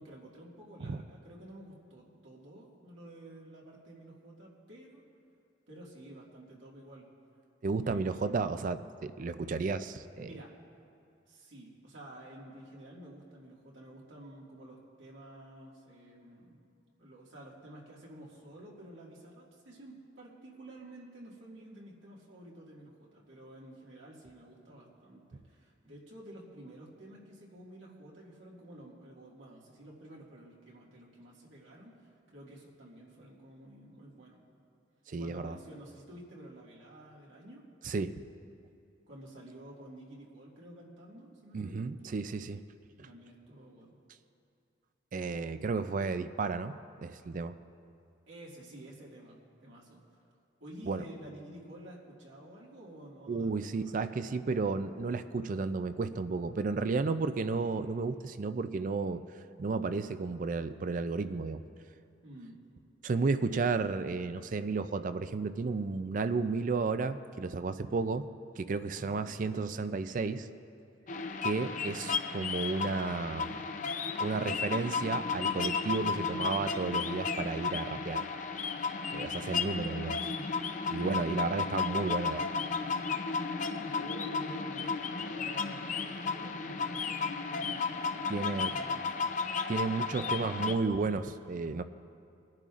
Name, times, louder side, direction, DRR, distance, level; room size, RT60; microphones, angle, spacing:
voice 1, 0.0-5.0 5.7-7.1 7.8-8.5 10.2-10.5 11.3-16.6 17.0-34.4 35.1-37.6 39.1-41.9 43.0-44.0 48.3-50.0 50.6-54.0 62.2-62.6 68.9-69.2 83.9-89.4, right 1 dB, 85° right, -4 dB, 2.0 m, -51 dB
voice 2, 7.6-10.3 35.1-35.6 37.8-38.1 41.5-42.6 45.1-47.5 50.9-51.0 53.3-59.2 59.6-61.6 63.0-68.3 68.6-70.5 71.4-73.5 74.2-78.2 79.1-80.2 80.9-82.5 88.3-88.7 89.7-91.8, right 4 dB, 45° right, 12 dB, 0.4 m, -33 dB
sound 1, 71.1-90.7, left 5 dB, 40° left, 0.5 m, -34 dB
22.0 x 10.5 x 2.5 m, 2.5 s
head